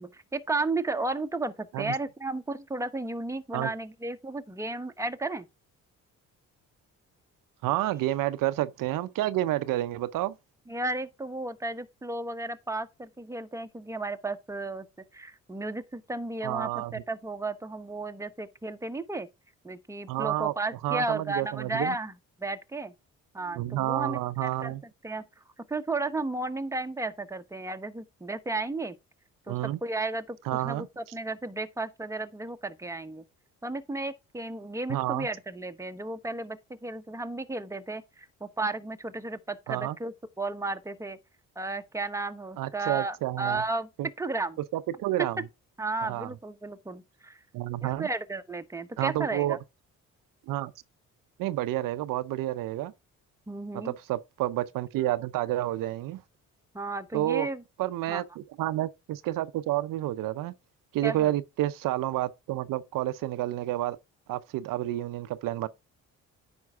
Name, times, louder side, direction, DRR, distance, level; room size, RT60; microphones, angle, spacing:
voice 1, 0.0-5.5 10.7-14.9 15.1-19.3 19.6-22.1 22.4-22.9 23.3-24.7 25.0-25.2 25.7-28.9 29.5-30.4 30.6-33.2 33.6-41.2 41.6-43.9 44.2-44.6 45.2-45.4 45.8-47.4 47.8-49.6 53.5-53.9 56.7-57.6 58.1-58.2 61.0-61.3, right 2 dB, 10° right, 1.0 m, -33 dB
voice 2, 7.6-10.3 16.4-16.9 20.1-20.5 20.8-21.9 23.5-24.8 29.5-29.8 30.5-30.9 34.9-35.3 39.7-40.0 42.6-43.6 44.0-44.1 44.7-45.4 46.0-46.3 47.5-48.1 49.0-49.6 50.5-50.7 51.4-52.9 53.7-56.2 57.1-57.5 57.8-60.5 60.9-64.0 64.3-65.7, right 15 dB, 80° right, 0.6 m, -29 dB
9.4 x 5.3 x 3.5 m
cardioid pair, 85°, 32 cm